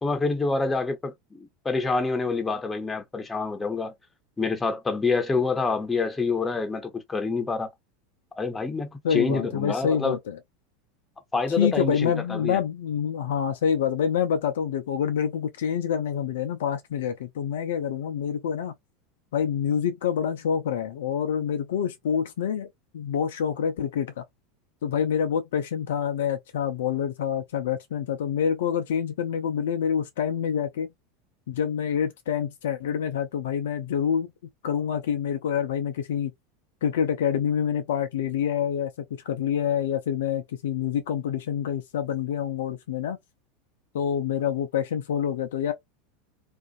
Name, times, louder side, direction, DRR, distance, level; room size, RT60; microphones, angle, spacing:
voice 1, 0.0-3.9 4.4-7.7 8.4-10.2 11.3-12.6, left 4 dB, 15° left, 0.8 m, -27 dB
voice 2, 9.0-10.4 11.6-18.7 19.3-22.7 22.9-24.2 24.8-30.9 31.5-34.3 34.6-36.3 36.8-38.9 39.3-43.2 43.9-45.7, left 8 dB, 70° left, 0.4 m, -27 dB
2.5 x 2.4 x 2.4 m
figure-of-eight pair, 85°, 0 cm